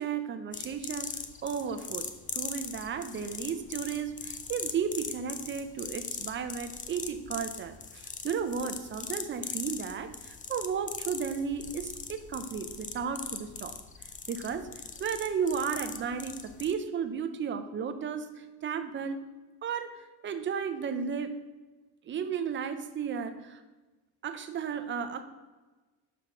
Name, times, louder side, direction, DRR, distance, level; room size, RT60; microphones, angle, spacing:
voice 1, 0.0-2.1 2.3-13.8 14.3-19.3 19.6-21.4 22.1-23.6 24.2-25.2, right 6 dB, 30° right, 10 dB, 0.5 m, -34 dB
sound 1, 0.5-16.7, left 6 dB, 20° left, 0.4 m, -40 dB
5.9 x 5.0 x 6.0 m, 1.2 s
cardioid pair, 150°, 38 cm